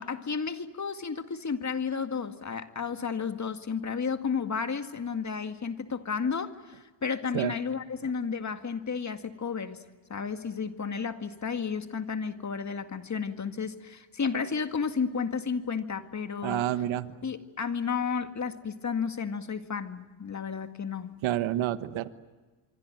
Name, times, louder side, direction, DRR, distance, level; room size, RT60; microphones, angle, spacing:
voice 1, 0.0-9.8 10.1-16.7 17.2-21.2, left 6 dB, 35° left, 8 dB, 2.1 m, -32 dB
voice 2, 16.4-17.1 21.2-22.1, right 12 dB, 70° right, 13 dB, 1.4 m, -28 dB
26.5 x 24.0 x 9.2 m, 1.3 s
supercardioid pair, 65°, 49 cm